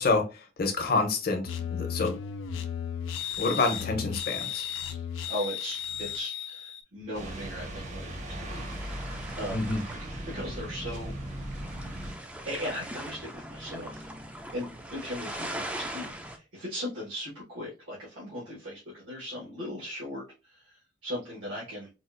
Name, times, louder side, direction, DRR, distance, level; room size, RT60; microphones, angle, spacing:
voice 1, 0.0-2.2 3.4-4.7 9.5-9.8, left 3 dB, 50° left, 0.7 m, -28 dB
sound 1, 1.5-6.8, left 8 dB, 90° left, 0.5 m, -34 dB
voice 2, 5.3-9.6 10.1-11.1 12.4-21.9, equal, 85° right, 1.4 m, -38 dB
sound 2, 7.1-12.1, right 1 dB, 35° right, 0.7 m, -38 dB
sound 3, 8.5-16.4, right 1 dB, 5° right, 0.3 m, -41 dB
4.1 x 2.3 x 2.5 m
head